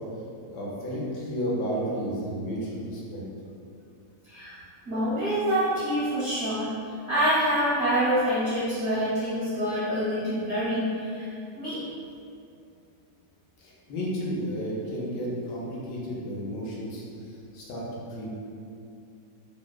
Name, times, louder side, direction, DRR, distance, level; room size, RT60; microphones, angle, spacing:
voice 1, 0.4-3.2 13.6-17.0 17.5-17.8 18.1-18.4, equal, 75° left, -5 dB, 1.2 m, -32 dB
voice 2, 4.2-4.6 4.9-6.7 7.1-11.8, equal, 65° right, -11 dB, 0.7 m, -26 dB
3.0 x 2.0 x 2.2 m, 2.5 s
omnidirectional pair, 1.9 m